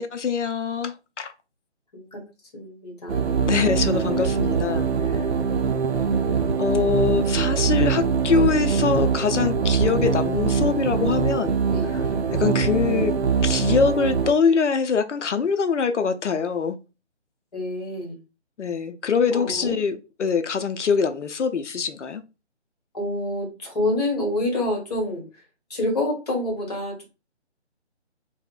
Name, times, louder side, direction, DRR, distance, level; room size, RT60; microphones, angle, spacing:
voice 1, 0.0-1.3 3.4-5.2 6.6-11.6 11.9-12.0 12.3-13.1 13.4-16.8 18.6-22.2, left 6 dB, 90° left, 0.5 m, -23 dB
voice 2, 2.5-3.5 11.7-11.9 17.5-18.2 19.3-19.7 22.9-25.4 25.7-27.0, left 1 dB, 35° left, 1.0 m, -27 dB
sound 1, 3.1-14.3, right 6 dB, 65° right, 0.5 m, -23 dB
3.6 x 2.0 x 2.3 m
figure-of-eight pair, 155°, 35 cm